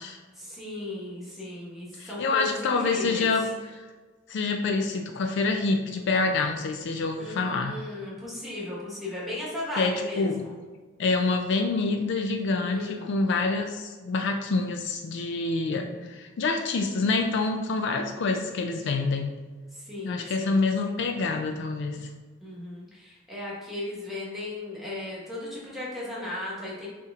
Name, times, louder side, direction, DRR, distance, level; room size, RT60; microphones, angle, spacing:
voice 1, 0.3-3.3 7.2-10.6 12.6-13.1 15.7-16.1 19.7-20.6 22.4-26.9, left 1 dB, ahead, -6 dB, 1.3 m, -36 dB
voice 2, 2.0-3.8 4.3-7.8 9.8-10.4 11.0-19.3 20.0-22.1, left 3 dB, 60° left, 5 dB, 0.3 m, -27 dB
5.9 x 2.9 x 2.4 m, 1.4 s
head